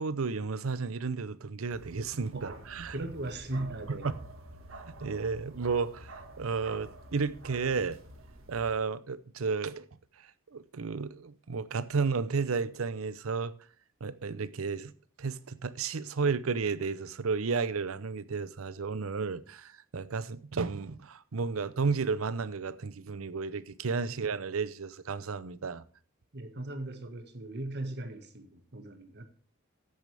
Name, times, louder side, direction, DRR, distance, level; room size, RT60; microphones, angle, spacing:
voice 1, 0.0-3.0 3.9-4.0 5.0-6.1 6.4-8.0 8.5-9.9 10.5-13.5 14.0-14.9 15.2-25.8, right 4 dB, 90° right, 0.7 m, -32 dB
Bark, 1.7-8.8, right 2 dB, 70° right, 1.8 m, -48 dB
voice 2, 2.9-4.1 24.1-24.2 26.3-29.2, right 2 dB, 55° right, 1.8 m, -38 dB
13.5 x 9.4 x 3.4 m
head